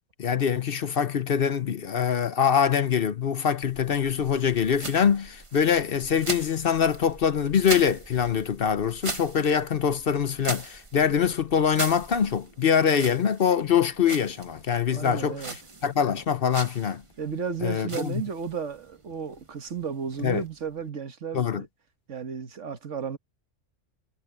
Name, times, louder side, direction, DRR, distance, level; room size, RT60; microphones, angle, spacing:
voice 1, 0.2-15.4 15.8-17.0 17.6-18.1 20.2-20.4 21.3-21.6, left 7 dB, 55° left, 0.9 m, -24 dB
sound 1, 3.6-20.9, right 3 dB, 25° right, 1.1 m, -40 dB
voice 2, 14.9-15.6 17.2-21.7 22.1-23.2, right 6 dB, 80° right, 1.8 m, -33 dB
omnidirectional pair, 1.3 m